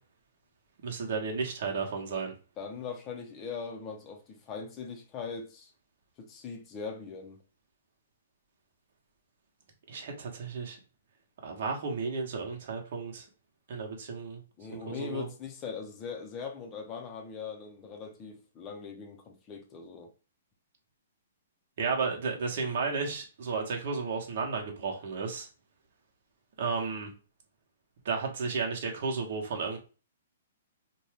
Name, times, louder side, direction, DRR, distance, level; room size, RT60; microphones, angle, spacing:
voice 1, 0.8-2.3 9.9-10.8 11.4-13.2 13.7-14.4 14.9-15.3 21.8-25.5 26.6-27.1 28.0-29.8, right 4 dB, 55° right, 0.9 m, -33 dB
voice 2, 2.6-5.7 6.2-7.4 14.6-20.1, left 5 dB, 25° left, 0.5 m, -40 dB
2.6 x 2.2 x 3.2 m
hypercardioid pair, 150°, 0 cm